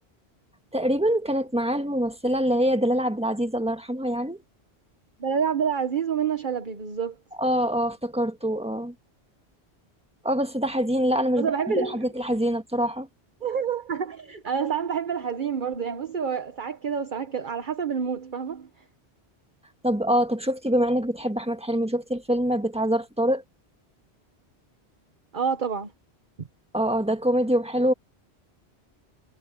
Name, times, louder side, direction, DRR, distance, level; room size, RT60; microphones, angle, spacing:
voice 1, 0.7-4.4 7.4-8.9 10.2-13.1 19.8-23.4 26.7-27.9, equal, 5° right, 1.5 m, -25 dB
voice 2, 5.2-7.2 11.4-12.0 13.4-18.7 25.3-25.9 26.4-26.5, right 7 dB, 50° right, 1.3 m, -28 dB
omnidirectional pair, 1.1 m